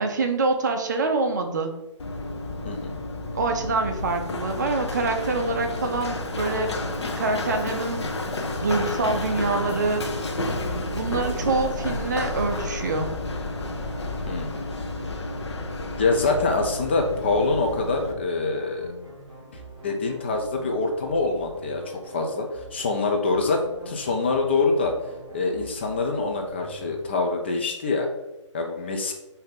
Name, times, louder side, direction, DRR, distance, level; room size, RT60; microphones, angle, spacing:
voice 1, 0.0-1.7 3.3-6.7 7.2-8.0 8.6-10.1 10.9-13.1, right 3 dB, 35° right, 5 dB, 0.5 m, -25 dB
Run, 2.0-18.1, left 2 dB, 60° left, 0.7 m, -31 dB
sound 1, 11.0-27.1, equal, 15° right, 1.4 m, -44 dB
voice 2, 14.3-14.7 16.0-18.9 19.8-25.0 25.3-28.1 28.5-29.1, left 3 dB, 20° left, 2 dB, 0.4 m, -25 dB
5.3 x 2.7 x 3.7 m, 0.96 s
figure-of-eight pair, 135°, 16 cm